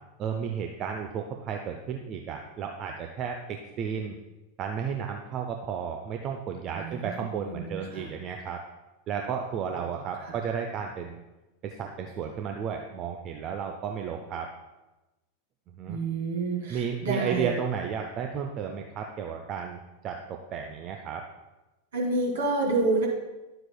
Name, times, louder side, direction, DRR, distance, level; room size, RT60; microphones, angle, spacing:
voice 1, 0.2-4.1 4.6-8.6 9.1-11.2 11.6-14.5 15.8-16.0 16.7-21.2, right 7 dB, 35° right, 3 dB, 0.6 m, -33 dB
voice 2, 6.7-8.1 9.7-10.4 15.9-17.5 21.9-23.1, right 3 dB, 60° right, -1 dB, 2.3 m, -29 dB
11.0 x 7.7 x 2.2 m, 1.1 s
figure-of-eight pair, 90°, 0 cm